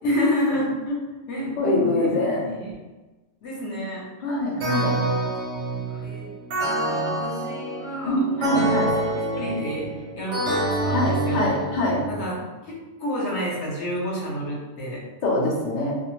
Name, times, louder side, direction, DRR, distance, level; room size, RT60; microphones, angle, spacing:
voice 1, 0.0-2.8 3.4-4.1 4.9-5.2 5.6-6.3 6.5-11.7 12.1-15.0, equal, 70° left, -4 dB, 1.0 m, -30 dB
voice 2, 1.6-2.4 4.2-5.0 8.1-8.9 10.9-12.0 15.2-15.9, left 1 dB, 50° left, -4 dB, 0.5 m, -23 dB
sound 1, 4.6-12.3, right 2 dB, 75° right, 0.9 m, -27 dB
2.4 x 2.0 x 2.9 m, 1.2 s
omnidirectional pair, 1.2 m